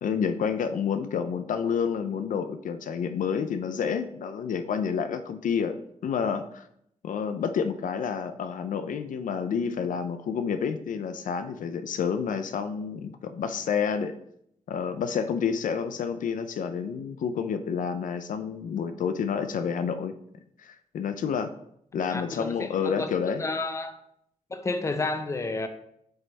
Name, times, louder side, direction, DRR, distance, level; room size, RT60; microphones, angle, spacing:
voice 1, 0.0-5.8 6.0-6.6 7.0-14.1 14.7-20.1 20.6-21.5 21.9-23.4, left 6 dB, 75° left, 9 dB, 0.4 m, -29 dB
voice 2, 22.1-23.1 23.4-23.9 24.5-25.7, left 3 dB, 20° left, 8 dB, 0.5 m, -31 dB
7.9 x 3.3 x 4.0 m, 0.74 s
wide cardioid pair, 115°, 13 cm